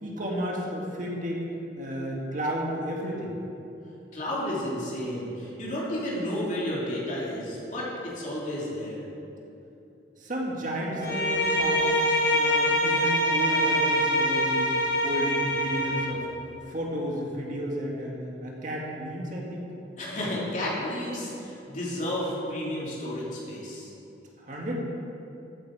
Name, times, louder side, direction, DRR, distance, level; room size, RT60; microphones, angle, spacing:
voice 1, 0.0-1.5 1.8-3.3 10.2-12.0 12.3-14.7 15.0-16.3 16.7-18.2 18.4-19.6 24.4-24.9, equal, 45° right, -2 dB, 1.9 m, -32 dB
voice 2, 4.1-9.0 20.0-23.9, left 1 dB, 45° left, -6 dB, 3.1 m, -32 dB
Bowed string instrument, 11.0-16.2, equal, 80° left, 2.5 m, -24 dB
14.0 x 8.8 x 4.8 m, 2.8 s
head